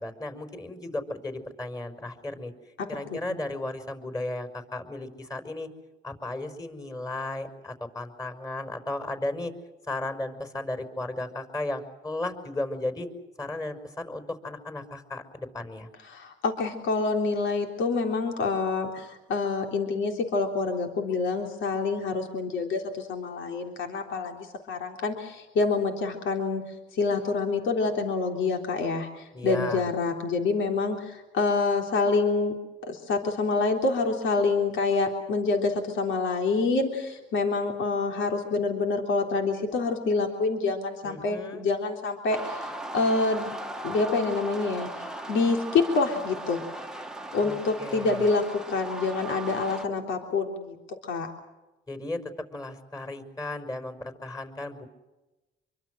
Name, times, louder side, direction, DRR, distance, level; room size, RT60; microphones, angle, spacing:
voice 1, 0.0-2.5 2.9-5.7 6.0-9.5 9.9-13.1 13.4-15.9 29.3-29.9 41.0-41.7 47.4-48.3 51.9-54.9, left 2 dB, 20° left, 8 dB, 5.5 m, -35 dB
voice 2, 2.8-3.2 16.1-32.5 32.9-43.5 43.8-44.9 45.3-46.6 47.3-50.8 51.0-51.3, left 4 dB, 75° left, 3 dB, 3.6 m, -27 dB
sound 1, 42.3-49.8, right 1 dB, 5° right, 1.6 m, -38 dB
26.0 x 24.0 x 6.4 m, 1.1 s
cardioid pair, 90°, 20 cm